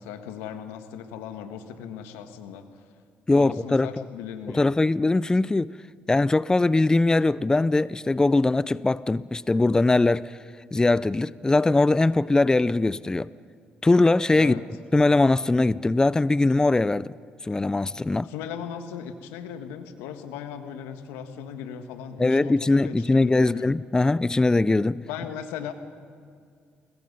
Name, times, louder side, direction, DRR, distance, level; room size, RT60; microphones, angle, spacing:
voice 1, 0.0-2.9 3.3-4.7 14.4-14.6 18.2-23.7 25.0-25.7, left 8 dB, 85° left, 1.6 m, -38 dB
voice 2, 3.3-3.9 4.5-5.7 6.1-10.4 10.7-13.3 13.8-14.5 14.9-17.1 17.4-18.3 22.2-25.0, left 2 dB, 15° left, 0.5 m, -21 dB
29.5 x 22.0 x 5.5 m
supercardioid pair, 65°, 4 cm